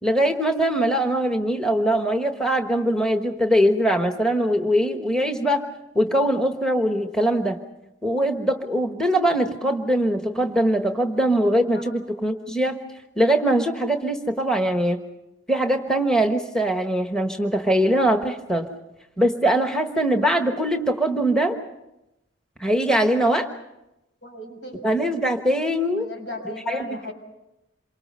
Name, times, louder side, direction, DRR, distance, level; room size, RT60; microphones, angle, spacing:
voice 1, 0.0-5.6 5.9-7.6 8.0-12.8 13.2-15.0 15.5-18.7 19.2-21.6 22.6-23.5 24.8-26.1 26.7-26.8, right 1 dB, 5° left, 5 dB, 1.2 m, -22 dB
voice 2, 24.2-24.9 25.9-27.1, left 2 dB, 75° left, 3 dB, 6.3 m, -36 dB
27.5 x 24.5 x 5.5 m, 0.91 s
head